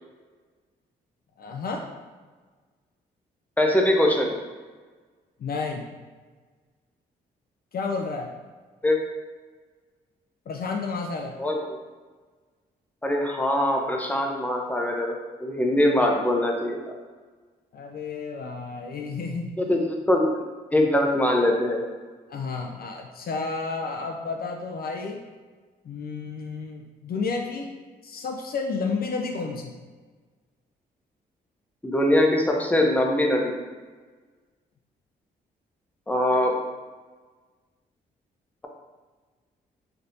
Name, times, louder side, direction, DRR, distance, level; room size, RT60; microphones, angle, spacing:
voice 1, 1.4-1.8 5.4-5.9 7.7-8.3 10.5-11.3 17.7-19.8 22.3-25.2 25.8-27.7 28.0-29.7, left 4 dB, 55° left, 2 dB, 0.5 m, -31 dB
voice 2, 3.6-4.3 8.8-9.0 11.4-11.8 13.0-15.1 15.4-16.8 19.6-20.4 20.7-21.8 31.8-33.5 36.1-36.5, left 1 dB, 10° left, 1 dB, 0.7 m, -22 dB
4.1 x 3.2 x 2.7 m, 1.4 s
supercardioid pair, 50°, 19 cm